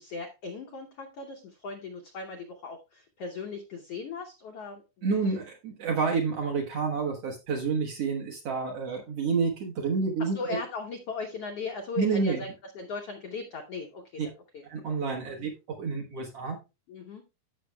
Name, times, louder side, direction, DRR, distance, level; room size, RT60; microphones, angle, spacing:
voice 1, 0.0-5.1 10.2-14.6 16.9-17.2, left 4 dB, 75° left, 3 dB, 1.4 m, -38 dB
voice 2, 5.0-10.6 12.0-12.4 14.2-14.3 14.6-15.5 15.8-16.6, right 4 dB, 60° right, 1 dB, 1.7 m, -29 dB
14.5 x 6.1 x 2.2 m, 0.26 s
omnidirectional pair, 4.1 m